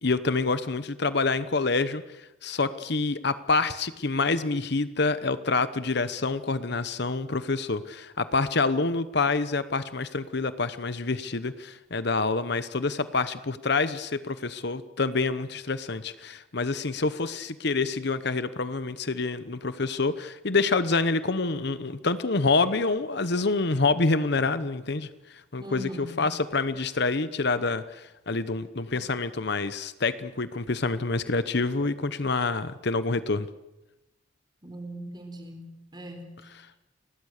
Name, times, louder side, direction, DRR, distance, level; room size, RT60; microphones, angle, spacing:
voice 1, 0.0-33.5, left 3 dB, 60° left, 13 dB, 1.0 m, -27 dB
voice 2, 25.6-26.2 31.8-31.9 34.6-36.5, equal, 20° right, 5 dB, 4.4 m, -40 dB
29.5 x 20.5 x 6.7 m, 0.95 s
head